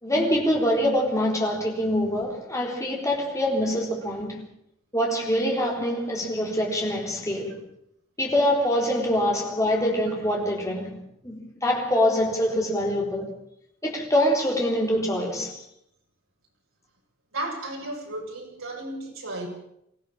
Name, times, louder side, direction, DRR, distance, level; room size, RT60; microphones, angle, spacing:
voice 1, 0.0-4.4 4.9-7.6 8.2-13.3 13.8-15.6, equal, 15° left, 4.0 m, -25 dB
voice 2, 17.3-19.5, right 1 dB, 75° right, 7.6 m, -34 dB
23.0 x 16.0 x 7.3 m
head